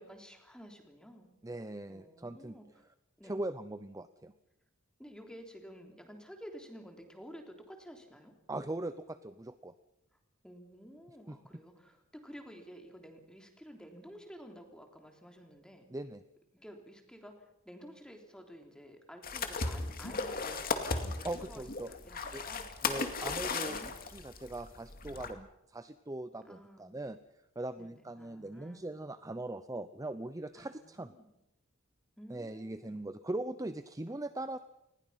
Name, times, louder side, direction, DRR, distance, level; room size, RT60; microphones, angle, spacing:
voice 1, 0.0-1.3 1.9-2.7 3.2-3.4 5.0-8.3 10.4-15.9 16.5-22.6 23.2-24.0 26.4-27.0 27.8-29.0 30.6-31.3 32.2-33.0, equal, 5° left, 3 dB, 3.4 m, -52 dB
voice 2, 1.4-2.6 3.2-4.3 8.5-9.7 11.3-11.4 15.9-16.2 21.2-21.9 22.3-22.4 22.8-27.2 27.6-31.1 32.3-34.6, right 2 dB, 15° right, 11 dB, 0.7 m, -40 dB
sound 1, 19.2-25.3, left 4 dB, 45° left, 2.3 m, -36 dB
28.5 x 20.5 x 5.8 m, 0.85 s
head